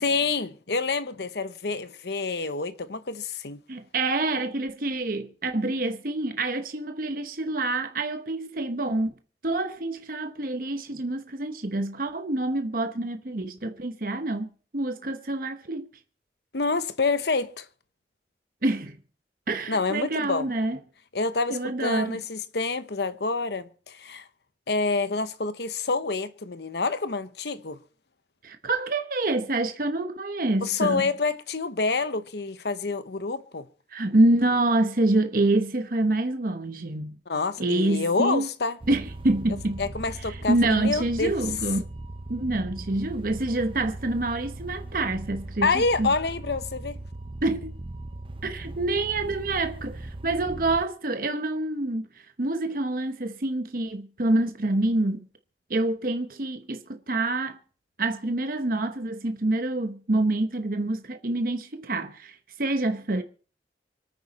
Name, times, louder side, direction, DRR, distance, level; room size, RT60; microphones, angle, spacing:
voice 1, 0.0-3.6 16.5-17.7 19.7-20.5 21.1-24.3 24.7-27.8 30.6-33.7 37.3-38.8 39.8-41.3 45.6-47.0, left 4 dB, 70° left, 0.9 m, -27 dB
voice 2, 3.7-9.1 9.4-15.9 18.6-19.0 19.5-20.8 21.5-22.2 28.4-31.1 33.9-37.2 37.6-38.5 38.9-39.8 40.2-41.9 42.3-46.1 47.4-47.8 48.4-52.0 52.4-55.2 55.7-57.6 58.0-63.2, right 2 dB, 50° right, 1.0 m, -27 dB
sound 1, 38.8-50.8, right 1 dB, 30° right, 0.6 m, -39 dB
25.0 x 9.3 x 4.2 m
head